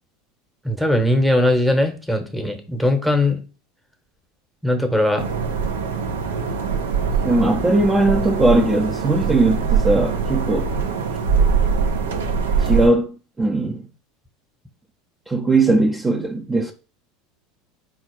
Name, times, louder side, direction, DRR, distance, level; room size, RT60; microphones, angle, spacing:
voice 1, 0.6-3.4 4.6-5.2, left 1 dB, ahead, 0.9 m, -19 dB
sound 1, 5.2-12.9, right 6 dB, 85° right, 0.6 m, -22 dB
voice 2, 7.2-10.7 12.6-13.9 15.3-16.7, right 2 dB, 20° right, 0.5 m, -19 dB
4.1 x 2.5 x 4.5 m
hypercardioid pair, 90°, 0 cm